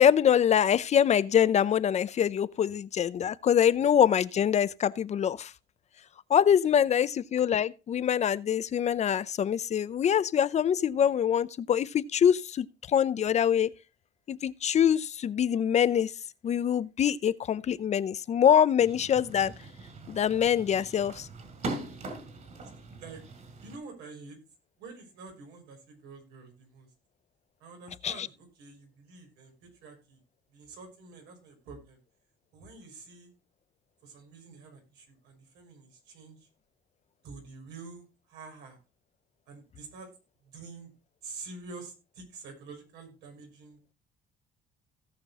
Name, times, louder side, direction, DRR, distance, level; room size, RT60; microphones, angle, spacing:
voice 1, 0.0-5.5 6.3-13.7 14.3-16.1 16.4-19.5 20.1-21.3 28.0-28.3, left 9 dB, 40° left, 0.6 m, -24 dB
sound 1, 18.8-23.8, right 2 dB, 45° right, 4.2 m, -41 dB
voice 2, 23.6-24.4 24.8-26.9 27.6-30.2 30.5-32.0 32.5-33.3 34.0-36.4 37.2-38.8 39.5-40.1 40.4-40.9 41.2-43.9, right 4 dB, 85° right, 6.1 m, -47 dB
17.0 x 6.0 x 3.6 m
cardioid pair, 110°, 17 cm